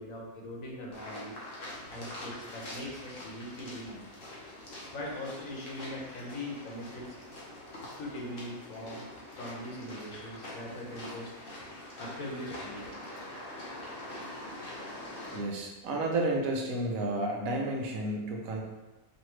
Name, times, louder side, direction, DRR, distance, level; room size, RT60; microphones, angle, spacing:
voice 1, 0.0-1.3 1.9-4.0 4.9-7.2 8.0-11.3 12.0-12.8, left 1 dB, 80° left, -2 dB, 1.4 m, -41 dB
sound 1, 0.9-15.4, left 1 dB, 45° left, 1.1 m, -44 dB
voice 2, 15.3-18.6, right 2 dB, 90° right, 0 dB, 1.2 m, -31 dB
5.1 x 2.8 x 3.2 m, 1.1 s
omnidirectional pair, 1.4 m